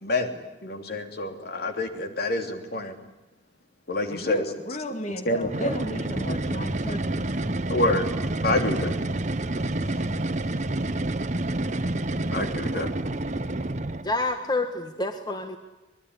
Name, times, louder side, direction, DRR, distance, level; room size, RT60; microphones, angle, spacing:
voice 1, 0.0-3.0 3.9-4.5 5.2-5.7 7.7-8.1 8.4-8.9 12.3-12.9, left 2 dB, 60° left, 5 dB, 3.1 m, -27 dB
voice 2, 4.1-7.3 8.5-8.7, left 1 dB, 40° left, 7 dB, 2.3 m, -35 dB
sound 1, 5.4-14.2, right 2 dB, 40° right, 1.1 m, -28 dB
voice 3, 14.0-15.6, left 2 dB, 25° left, 6 dB, 1.7 m, -28 dB
24.5 x 21.0 x 9.9 m, 1.0 s
head